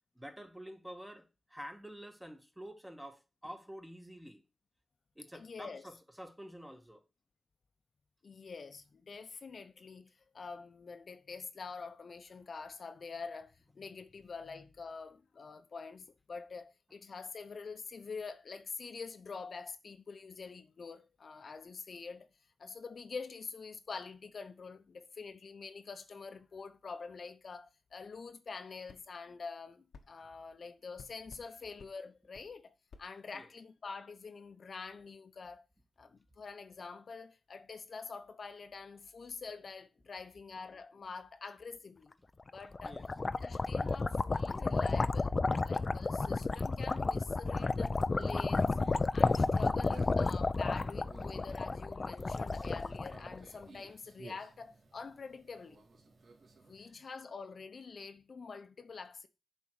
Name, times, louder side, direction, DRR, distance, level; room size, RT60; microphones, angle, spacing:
voice 1, 0.2-1.2 1.5-4.4 5.2-7.0 33.3-33.5 42.8-43.0 56.9-57.0, equal, 5° right, 1.7 m, -48 dB
voice 2, 5.3-5.9 8.2-22.3 22.6-35.7 36.0-42.1 42.5-43.0 43.4-45.3 45.6-48.8 49.1-55.8 56.7-59.3, left 4 dB, 65° left, 0.8 m, -46 dB
sound 1, 28.9-29.0 29.9-30.1 31.0-31.5 31.8-31.9 32.3-32.5 32.9-33.1, left 5 dB, 85° left, 1.1 m, -54 dB
sound 2, 42.5-53.7, left 3 dB, 40° left, 0.5 m, -32 dB
Conversation, 48.0-56.9, right 3 dB, 70° right, 1.9 m, -56 dB
7.1 x 4.5 x 6.4 m
cardioid pair, 65°, 0 cm